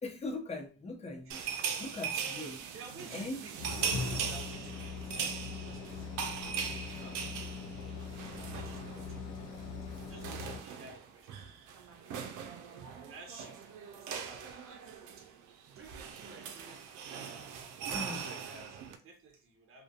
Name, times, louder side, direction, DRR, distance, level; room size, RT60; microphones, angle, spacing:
voice 1, 0.0-1.4 1.8-2.6 3.1-3.4 17.9-18.3, left 2 dB, 20° left, 3 dB, 0.6 m, -40 dB
voice 2, 1.2-1.7 2.2-6.3 6.6-7.5 7.9-11.4 11.8-14.8 15.2-15.3 15.7-17.5 18.0-19.8, right 4 dB, 45° right, 4 dB, 0.7 m, -54 dB
sound 1, 1.3-9.2 9.4-9.6 9.9-19.0, right 7 dB, 90° right, 0.5 m, -40 dB
sound 2, 3.6-10.6, left 4 dB, 70° left, 0.6 m, -41 dB
2.3 x 2.2 x 2.6 m, 0.35 s
cardioid pair, 90°, 30 cm